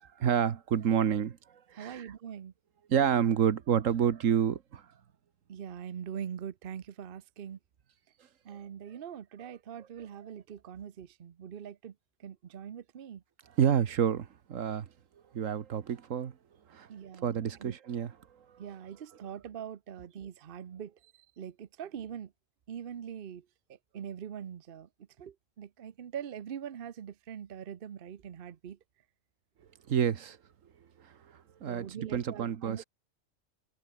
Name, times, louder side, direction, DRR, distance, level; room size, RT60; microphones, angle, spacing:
voice 1, 0.2-1.4 1.7-2.1 2.9-4.8 13.6-14.9 15.3-16.3 16.7-16.9 17.2-18.1 29.9-30.4 31.6-32.8, right 8 dB, 75° right, 1.4 m, -28 dB
voice 2, 1.8-2.5 5.5-7.6 8.4-11.9 12.2-13.2 16.9-17.7 18.6-22.3 22.7-24.9 25.2-28.8 31.7-32.8, right 8 dB, 50° right, 0.9 m, -43 dB
omnidirectional pair, 1.4 m